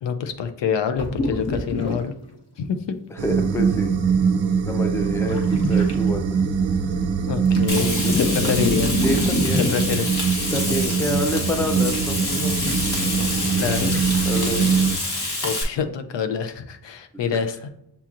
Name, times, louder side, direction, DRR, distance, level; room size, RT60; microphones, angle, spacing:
voice 1, 0.0-2.1 2.6-3.0 7.3-9.0 9.7-10.2 10.8-11.0 13.6-14.0 15.4-17.7, left 7 dB, 75° left, 8 dB, 0.6 m, -26 dB
sound 1, 1.0-2.0 2.3-2.4 5.3-5.9 7.5-10.0 12.3-14.7 15.1-15.2, left 2 dB, 35° left, 0.7 m, -27 dB
voice 2, 3.1-3.9 4.6-6.4 7.7-8.2 8.4-8.5 9.0-9.6 10.5-12.6 14.3-15.0 17.3-17.4, equal, 5° left, 5 dB, 0.4 m, -28 dB
sound 2, 3.2-15.0, right 6 dB, 90° right, 0.6 m, -23 dB
Frying (food), 7.7-15.6, left 2 dB, 55° left, 1.2 m, -27 dB
6.9 x 2.9 x 2.5 m, 0.78 s
wide cardioid pair, 130°, 44 cm